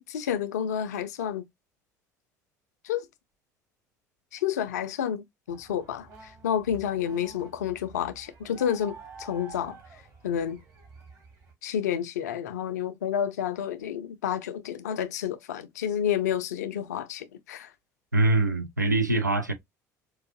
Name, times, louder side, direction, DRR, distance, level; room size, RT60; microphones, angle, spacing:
voice 1, 0.0-1.4 2.8-3.0 4.3-9.8 10.2-10.6 11.6-17.7, left 9 dB, 70° left, 0.4 m, -30 dB
sound 1, 5.5-11.5, right 3 dB, 40° right, 1.6 m, -49 dB
voice 2, 18.1-19.5, right 2 dB, 90° right, 0.4 m, -23 dB
4.6 x 2.4 x 2.3 m
figure-of-eight pair, 60°, 9 cm